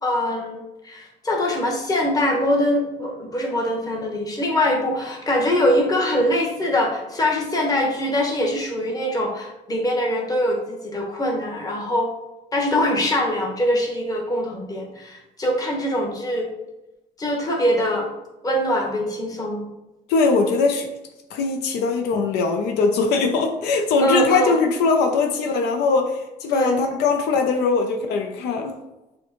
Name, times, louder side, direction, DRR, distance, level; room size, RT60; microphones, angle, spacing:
voice 1, 0.0-12.1 12.5-16.5 17.2-18.1 18.4-19.7 24.0-24.6 26.5-26.8, left 1 dB, 20° left, -1 dB, 1.1 m, -23 dB
voice 2, 20.1-20.9 21.3-28.8, left 4 dB, 80° left, 4 dB, 0.5 m, -21 dB
6.1 x 2.2 x 2.9 m, 0.98 s
cardioid pair, 110°, 17 cm